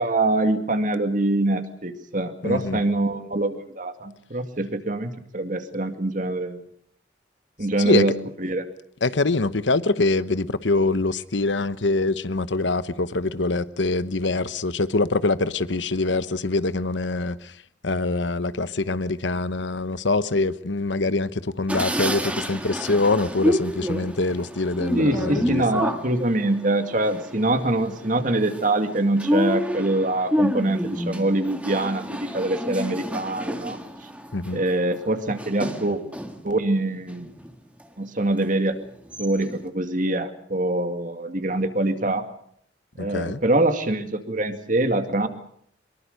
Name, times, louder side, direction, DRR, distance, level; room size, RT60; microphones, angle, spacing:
voice 1, 0.0-6.6 7.6-8.7 25.0-33.8 34.5-36.0 36.4-37.3 38.0-38.8 39.2-42.3 42.9-45.3, right 2 dB, 45° right, 2.3 m, -24 dB
voice 2, 2.4-2.8 7.8-8.0 9.0-17.5 17.8-25.6 34.3-34.6 43.0-43.4, left 3 dB, 80° left, 1.1 m, -24 dB
sound 1, 21.7-36.5 36.9-37.9 38.4-38.5 38.8-39.6, equal, 5° right, 2.0 m, -29 dB
24.0 x 22.5 x 6.7 m
head